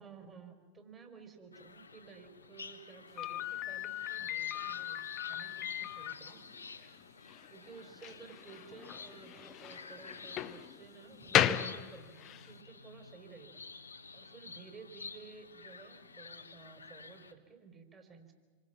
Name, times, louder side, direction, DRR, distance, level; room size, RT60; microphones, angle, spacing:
voice 1, 0.0-5.0 5.3-6.4 7.5-13.6 14.1-18.3, right 5 dB, 20° right, 5 dB, 4.2 m, -54 dB
sound 1, 1.5-17.3, left 4 dB, 85° left, 1.4 m, -50 dB
Slam, 3.2-12.5, left 12 dB, 35° left, 1.0 m, -36 dB
27.5 x 24.5 x 5.9 m, 1.4 s
figure-of-eight pair, 95°, 0 cm